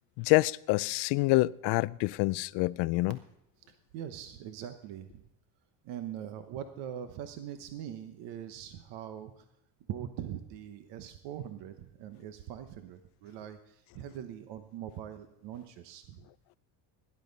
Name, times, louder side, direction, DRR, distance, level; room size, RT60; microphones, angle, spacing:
voice 1, 0.2-3.2, left 21 dB, 60° left, 0.5 m, -27 dB
voice 2, 3.7-5.2 5.8-9.4 9.9-16.3, right 10 dB, 60° right, 1.1 m, -42 dB
17.5 x 11.0 x 4.0 m
cardioid pair, 130°, 47 cm